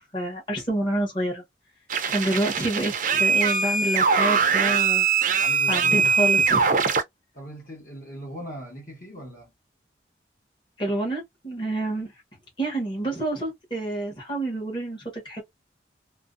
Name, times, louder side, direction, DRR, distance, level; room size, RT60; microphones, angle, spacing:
voice 1, 0.0-1.4 2.1-5.1 5.7-6.7 10.8-12.1 12.6-15.4, right 1 dB, 25° left, 1.1 m, -28 dB
sound 1, 1.9-7.0, right 5 dB, 45° right, 0.5 m, -22 dB
voice 2, 5.4-6.1 7.3-9.5, right 1 dB, 45° left, 1.2 m, -39 dB
2.5 x 2.1 x 2.4 m
head